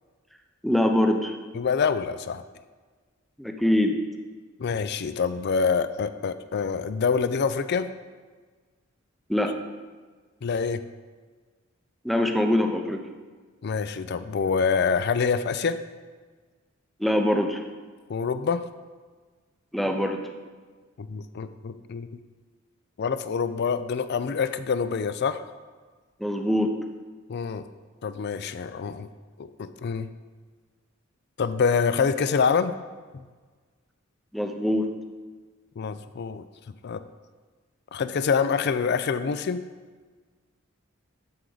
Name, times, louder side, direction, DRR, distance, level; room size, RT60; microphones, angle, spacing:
voice 1, 0.6-1.3 3.4-4.0 9.3-9.6 12.0-13.0 17.0-17.6 19.7-20.2 26.2-26.7 34.3-34.9, left 1 dB, ahead, 4 dB, 0.6 m, -23 dB
voice 2, 1.5-2.4 4.6-7.9 10.4-10.8 13.6-15.8 18.1-18.6 21.0-22.1 23.0-25.4 27.3-27.7 28.0-29.1 29.4-30.1 31.4-32.7 33.1-33.2 35.8-36.4 36.8-37.0 37.9-39.6, left 5 dB, 55° left, 12 dB, 0.4 m, -26 dB
12.5 x 4.8 x 3.9 m, 1.4 s
head